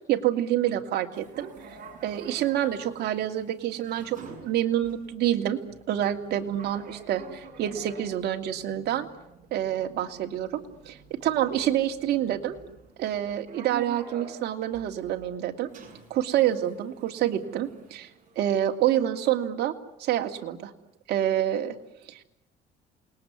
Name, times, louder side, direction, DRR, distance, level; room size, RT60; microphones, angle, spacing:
voice 1, 0.1-1.5 2.0-5.6 5.9-9.1 9.5-12.6 13.0-15.7 16.1-18.1 18.4-19.7 20.0-20.7 21.1-21.7 22.1-22.2, right 11 dB, 75° right, 5 dB, 2.6 m, -27 dB
sound 1, 1.1-18.6, right 4 dB, 50° right, 7.9 m, -48 dB
28.5 x 21.0 x 9.7 m, 0.88 s
cardioid pair, 110°, 17 cm